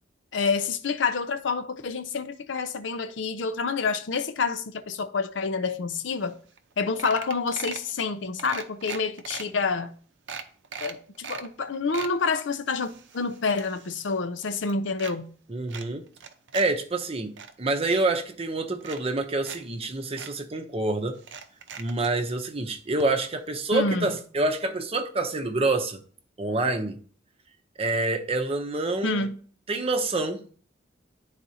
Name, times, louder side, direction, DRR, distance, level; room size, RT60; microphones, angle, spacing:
voice 1, 0.3-6.4 6.8-9.9 10.8-15.3 23.7-24.1 29.0-29.4, left 4 dB, 80° left, 0.6 m, -28 dB
sound 1, 6.3-6.4 6.6-6.7 7.0-7.9 8.4-9.4 9.9-10.0 10.3-11.5 11.7-12.1 12.7-14.2 14.4-15.1 15.7-16.7 17.0-17.5 18.3-18.4 18.8-19.6 19.8-19.9 20.2-20.3 21.2-22.1 23.0-23.1 23.4-23.5, right 6 dB, 75° right, 0.7 m, -39 dB
voice 2, 15.5-16.0 16.5-21.2 21.8-26.0 26.4-26.9 27.8-29.3 29.7-30.4, right 2 dB, 30° right, 0.7 m, -27 dB
10.5 x 4.1 x 2.8 m
head